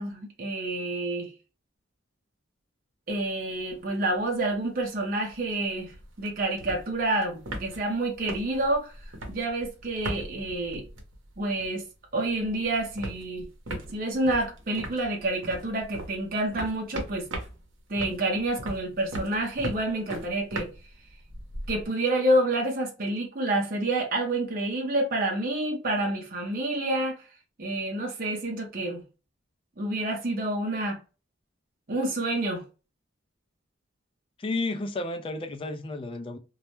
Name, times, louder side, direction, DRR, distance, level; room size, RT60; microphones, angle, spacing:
voice 1, 0.0-1.3 3.1-10.9 11.4-11.9 12.1-13.5 13.9-17.3 17.9-20.7 21.7-27.2 27.6-29.0 29.8-31.0 31.9-32.6, right 1 dB, 45° right, 0.7 m, -28 dB
sound 1, 3.1-3.8 4.1-4.2 4.4-11.8 12.1-21.9, right 1 dB, 80° right, 0.8 m, -39 dB
voice 2, 34.4-36.4, left 2 dB, 25° left, 0.3 m, -32 dB
2.2 x 2.0 x 2.8 m
head